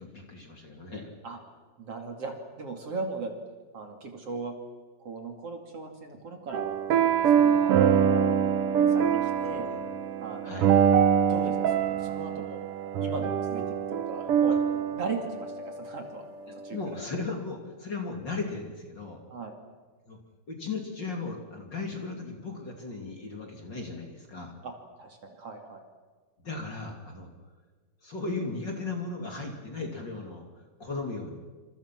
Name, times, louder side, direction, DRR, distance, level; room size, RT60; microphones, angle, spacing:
voice 1, 0.0-1.1 8.8-8.9 9.7-9.9 10.4-10.7 16.7-19.2 20.1-20.2 20.5-24.5 26.4-27.3 28.0-31.4, left 3 dB, 35° left, 2 dB, 3.2 m, -36 dB
voice 2, 1.8-3.3 3.7-4.6 5.0-6.6 7.3-7.8 8.1-8.4 8.9-9.7 10.2-10.7 11.3-12.6 13.0-16.2 16.6-17.0 19.3-19.5 24.6-24.7 25.0-25.8, right 4 dB, 45° right, 3 dB, 3.3 m, -38 dB
sound 1, 6.5-16.0, right 8 dB, 75° right, 1.3 m, -24 dB
28.5 x 26.5 x 6.1 m, 1.4 s
omnidirectional pair, 4.0 m